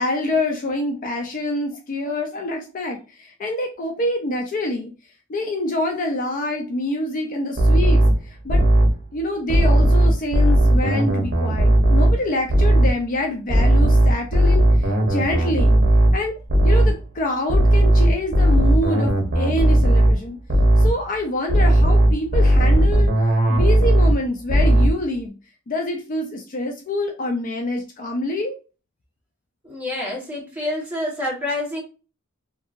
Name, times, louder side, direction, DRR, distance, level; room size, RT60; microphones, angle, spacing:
voice 1, 0.0-4.9 5.3-8.6 9.1-15.8 16.1-16.4 16.6-20.4 20.8-23.1 23.5-25.4 25.7-28.6, left 1 dB, 40° left, 2 dB, 0.4 m, -26 dB
sound 1, 7.6-9.0 9.5-12.2 12.5-13.0 13.5-17.0 17.5-20.2 20.5-21.0 21.5-24.2 24.5-25.0, right 1 dB, 55° right, 0.8 m, -16 dB
voice 2, 29.6-31.8, left 1 dB, 10° right, -5 dB, 1.2 m, -27 dB
2.7 x 2.6 x 2.5 m, 0.33 s
head